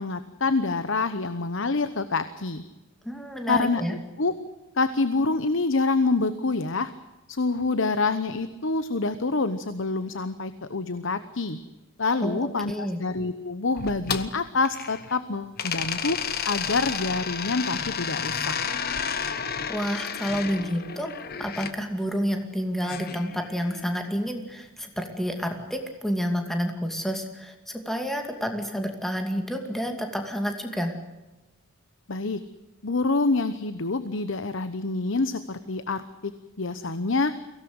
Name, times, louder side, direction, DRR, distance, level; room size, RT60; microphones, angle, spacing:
voice 1, 0.0-2.6 3.5-3.8 4.2-4.4 4.8-6.9 7.3-11.6 12.0-16.2 16.4-18.5 32.1-32.4 32.8-36.3 36.6-37.3, left 3 dB, 65° left, 12 dB, 1.0 m, -26 dB
voice 2, 3.0-4.0 12.2-13.0 19.7-21.1 21.4-30.9, equal, ahead, 4 dB, 2.5 m, -29 dB
sound 1, 13.8-15.2 15.6-21.7 22.8-24.0, left 7 dB, 50° left, 1.3 m, -32 dB
23.0 x 17.5 x 8.0 m, 1.1 s
head